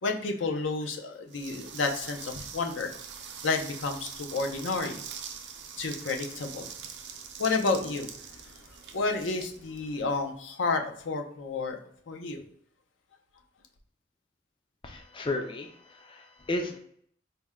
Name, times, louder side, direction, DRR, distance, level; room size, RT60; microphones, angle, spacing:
voice 1, 0.0-2.9 3.4-5.0 5.8-6.7 7.4-8.7 8.9-11.8 12.1-12.4, left 3 dB, 80° left, 4 dB, 0.6 m, -31 dB
sound 1, 1.3-10.3, right 7 dB, 65° right, 0.6 m, -43 dB
voice 2, 14.8-16.8, left 2 dB, 25° left, 4 dB, 0.4 m, -34 dB
4.2 x 2.1 x 3.5 m, 0.66 s
head